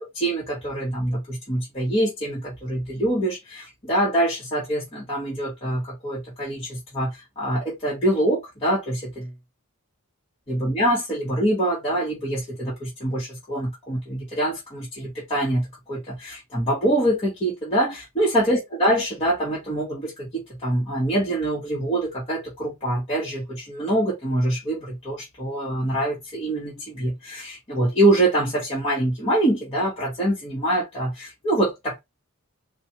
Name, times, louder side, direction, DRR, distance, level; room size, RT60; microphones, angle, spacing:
voice 1, 0.1-9.3 10.5-32.0, right 1 dB, 25° left, 1.1 m, -25 dB
4.0 x 2.3 x 2.9 m
head